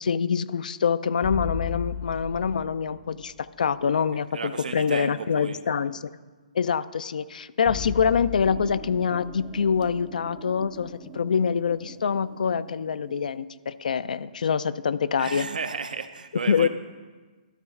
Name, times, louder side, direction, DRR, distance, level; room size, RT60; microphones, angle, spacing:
voice 1, 0.0-6.1 6.5-15.5 16.5-16.7, left 6 dB, 75° left, 16 dB, 0.3 m, -25 dB
sound 1, 1.2-3.4 7.7-10.9, left 7 dB, 25° left, 0.6 m, -36 dB
voice 2, 4.3-5.7 15.2-16.7, right 5 dB, 85° right, 10 dB, 0.6 m, -33 dB
sound 2, 8.4-13.4, right 10 dB, 20° right, 0.3 m, -46 dB
12.5 x 4.2 x 3.6 m, 1.3 s
hypercardioid pair, 145°, 4 cm